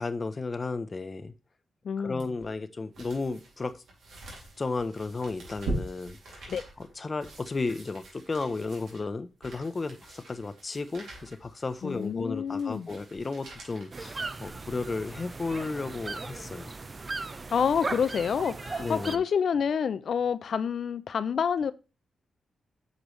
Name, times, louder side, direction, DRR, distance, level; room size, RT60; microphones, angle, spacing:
voice 1, 0.0-1.3 2.0-3.7 4.6-6.5 6.8-16.7 18.8-19.2, left 3 dB, 35° left, 0.8 m, -34 dB
voice 2, 1.8-2.3 6.5-6.6 11.8-12.9 17.5-21.7, left 7 dB, 65° left, 0.5 m, -28 dB
sound 1, 2.2-14.8 15.3-15.4, right 2 dB, 80° right, 2.6 m, -42 dB
sound 2, 13.9-19.2, right 3 dB, 35° right, 0.6 m, -37 dB
8.1 x 5.2 x 3.2 m
cardioid pair, 70°, 0 cm